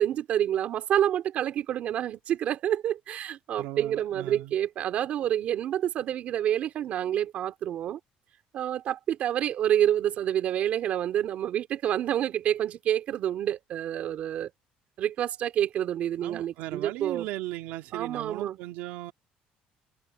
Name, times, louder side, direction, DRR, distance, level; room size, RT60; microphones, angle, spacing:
voice 1, 0.0-8.0 8.5-14.5 15.0-17.3 17.9-18.6, right 11 dB, 55° right, 2.7 m, -28 dB
voice 2, 3.6-4.5 16.2-19.1, right 17 dB, 90° right, 2.3 m, -37 dB
cardioid pair, 135°, 3 cm